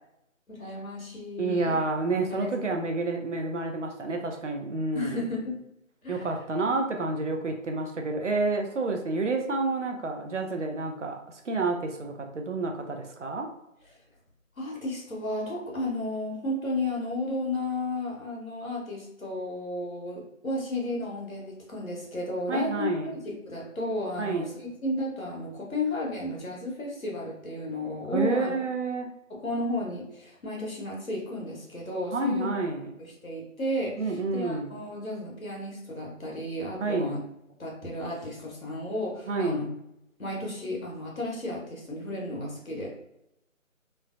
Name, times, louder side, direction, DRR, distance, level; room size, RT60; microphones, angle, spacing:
voice 1, 0.5-1.8 2.1-2.5 4.9-5.6 6.0-6.3 14.6-28.5 29.3-32.5 33.2-37.2 37.6-39.7 40.2-42.9, left 1 dB, 80° left, -2 dB, 1.2 m, -33 dB
voice 2, 1.4-5.2 6.1-13.5 22.5-23.2 24.2-24.6 28.1-29.1 32.1-32.9 34.0-34.7 36.8-37.2 39.3-39.7, right 3 dB, 60° right, 4 dB, 0.5 m, -29 dB
3.2 x 2.1 x 2.4 m, 0.82 s
figure-of-eight pair, 165°, 41 cm